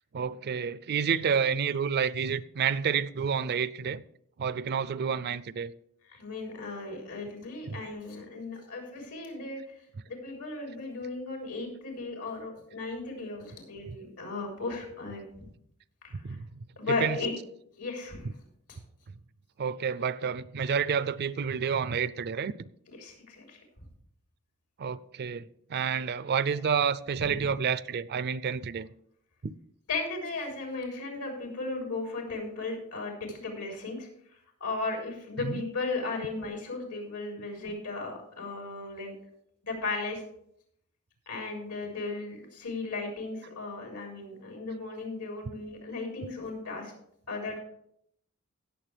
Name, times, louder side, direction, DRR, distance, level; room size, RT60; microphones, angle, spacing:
voice 1, 0.1-4.0 4.4-5.7 7.7-7.8 13.9-14.0 16.2-17.2 19.6-22.5 24.8-28.9 29.4-29.5 35.4-35.6, right 6 dB, 45° right, 0.4 m, -29 dB
voice 2, 6.1-9.6 10.1-15.5 16.0-16.4 16.8-17.3 17.8-18.3 18.7-18.8 23.0-23.6 27.2-27.4 29.9-34.1 34.6-39.1 39.6-40.2 41.3-46.9 47.3-47.6, left 3 dB, 85° left, 3.9 m, -36 dB
18.0 x 7.0 x 3.4 m
head